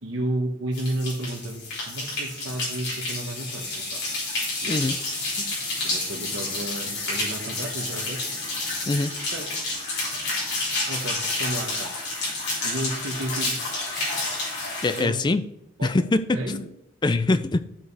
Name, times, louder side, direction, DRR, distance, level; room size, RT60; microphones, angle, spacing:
voice 1, 0.0-4.0 4.6-4.8 5.1-5.5 5.8-8.2 9.1-9.5 10.9-11.9 12.6-13.5 14.9-15.2 15.8-15.9 16.3-16.6, right 1 dB, 75° right, 3 dB, 1.3 m, -32 dB
sound 1, 0.7-15.0, left 2 dB, 55° left, 3.3 m, -29 dB
voice 2, 14.8-15.4 15.8-16.7 17.0-17.6, left 2 dB, 20° left, 12 dB, 0.4 m, -23 dB
13.0 x 4.9 x 3.3 m, 0.77 s
head